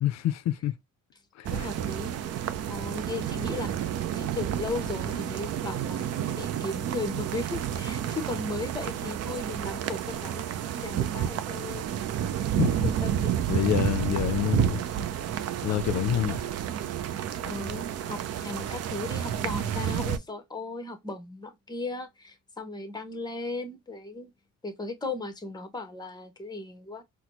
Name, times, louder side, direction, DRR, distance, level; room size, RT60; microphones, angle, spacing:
voice 1, 0.0-0.7 1.4-1.7 12.6-12.9 13.5-14.8 15.6-16.4 17.0-17.1, left 12 dB, 60° left, 0.5 m, -27 dB
sound 1, 1.4-20.2, right 10 dB, 55° right, 0.5 m, -30 dB
voice 2, 1.5-2.2 2.7-3.9 4.1-11.9 12.8-13.3 17.4-24.3 24.6-27.0, left 3 dB, 15° left, 0.8 m, -36 dB
4.0 x 2.0 x 2.9 m
cardioid pair, 90°, 30 cm